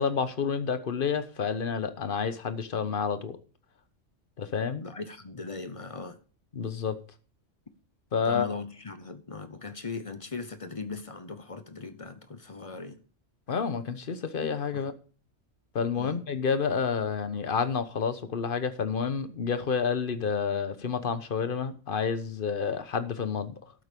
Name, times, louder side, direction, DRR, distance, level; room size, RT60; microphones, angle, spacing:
voice 1, 0.0-3.4 4.4-4.8 6.5-7.0 8.1-8.5 13.5-14.9 15.7-23.6, left 6 dB, 45° left, 1.1 m, -29 dB
voice 2, 4.8-6.2 8.2-13.0 14.7-14.9 15.9-16.2, left 4 dB, 30° left, 0.9 m, -39 dB
13.0 x 7.8 x 5.3 m
omnidirectional pair, 1.3 m